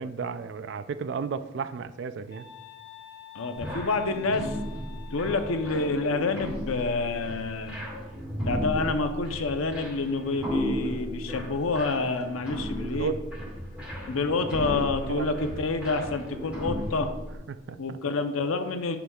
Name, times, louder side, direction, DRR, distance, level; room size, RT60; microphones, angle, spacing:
voice 1, 0.0-2.5 12.9-13.2 15.1-15.3 17.5-18.0, right 5 dB, 55° right, 12 dB, 0.3 m, -33 dB
sound 1, 2.3-5.9, left 9 dB, 50° left, 0.6 m, -48 dB
voice 2, 3.3-4.6 5.1-7.8 8.4-13.1 14.1-17.1 17.8-19.0, left 3 dB, 85° left, 7 dB, 0.7 m, -28 dB
sound 2, 3.6-17.3, equal, 5° right, 1.8 m, -35 dB
9.8 x 5.9 x 2.3 m, 1.0 s
head